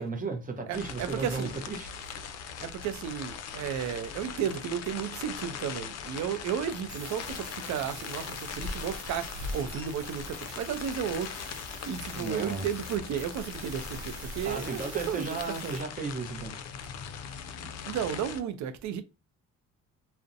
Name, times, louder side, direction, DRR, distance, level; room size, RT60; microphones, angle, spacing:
voice 1, 0.0-1.9 12.1-12.7 14.4-16.6, right 4 dB, 30° right, 0.6 m, -34 dB
sound 1, 0.7-18.4, left 6 dB, 60° left, 0.4 m, -40 dB
voice 2, 0.7-1.5 2.6-11.4 11.9-14.8 15.1-15.4 15.6-15.7 17.6-19.0, right 8 dB, 65° right, 0.5 m, -33 dB
sound 2, 6.9-15.8, right 1 dB, 10° right, 1.1 m, -46 dB
2.6 x 2.1 x 2.4 m
cardioid pair, 90°, 30 cm